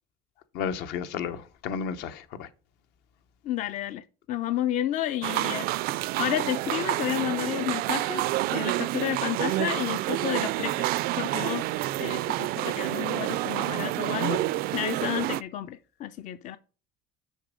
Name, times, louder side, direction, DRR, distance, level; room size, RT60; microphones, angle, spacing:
voice 1, 0.5-2.5, left 7 dB, 70° left, 0.9 m, -32 dB
voice 2, 3.4-4.0 4.3-5.7 6.2-10.9 11.2-11.6 12.0-14.4 14.7-16.6, left 12 dB, 45° left, 0.5 m, -31 dB
sound 1, 5.2-15.4, right 16 dB, 60° right, 0.4 m, -28 dB
6.5 x 5.3 x 5.0 m
cardioid pair, 120°, 18 cm